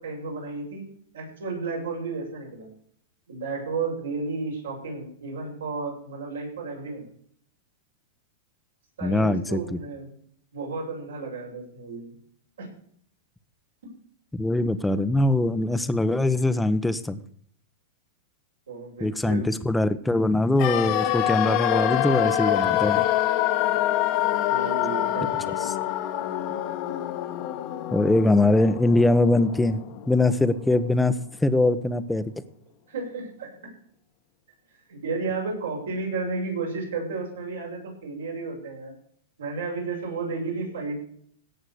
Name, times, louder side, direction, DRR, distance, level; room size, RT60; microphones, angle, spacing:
voice 1, 0.0-0.9 1.1-2.7 3.3-7.0 9.0-10.1 10.5-12.2 12.6-12.7 18.7-19.5 24.5-25.7 32.9-33.6 34.7-38.9 39.4-41.0, right 4 dB, 80° right, -1 dB, 7.3 m, -32 dB
voice 2, 9.0-9.8 14.3-17.2 19.0-23.1 25.6-25.7 27.9-29.8 30.1-31.1 31.4-32.3, left 2 dB, 5° left, 12 dB, 1.0 m, -22 dB
sound 1, 20.6-30.5 30.8-30.9, left 13 dB, 45° left, 1.5 m, -26 dB
17.0 x 6.4 x 6.4 m, 0.63 s
hypercardioid pair, 115°, 0 cm